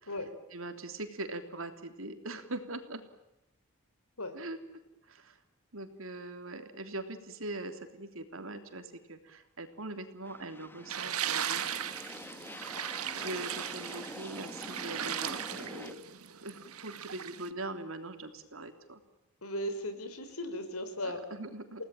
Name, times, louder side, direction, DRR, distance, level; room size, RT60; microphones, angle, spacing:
voice 1, 0.5-3.0 4.3-4.6 5.1-5.4 5.7-11.6 13.1-16.0 16.3-19.0 21.0-21.8, right 2 dB, 65° right, 7 dB, 3.4 m, -42 dB
sound 1, 10.2-16.0, left 1 dB, 10° left, 1.2 m, -46 dB
sound 2, 10.9-17.5, right 9 dB, 85° right, 1.5 m, -37 dB
voice 2, 19.4-21.2, left 1 dB, 80° left, 9 dB, 5.1 m, -37 dB
30.0 x 18.5 x 9.1 m, 0.95 s
head